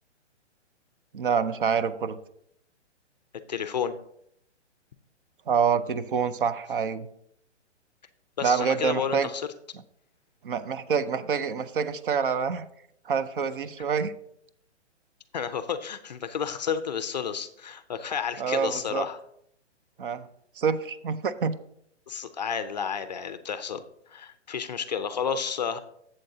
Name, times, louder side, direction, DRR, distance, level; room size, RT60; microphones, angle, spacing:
voice 1, 1.1-2.2 5.5-7.1 8.4-9.3 10.4-12.7 13.1-14.1 18.4-19.1 20.0-20.3 20.6-21.6, right 6 dB, 50° right, 14 dB, 0.5 m, -26 dB
voice 2, 3.5-4.0 8.4-9.5 15.3-19.2 22.1-23.8 24.1-25.8, left 7 dB, 40° left, 11 dB, 0.4 m, -31 dB
11.5 x 7.7 x 2.7 m, 0.71 s
hypercardioid pair, 155°, 36 cm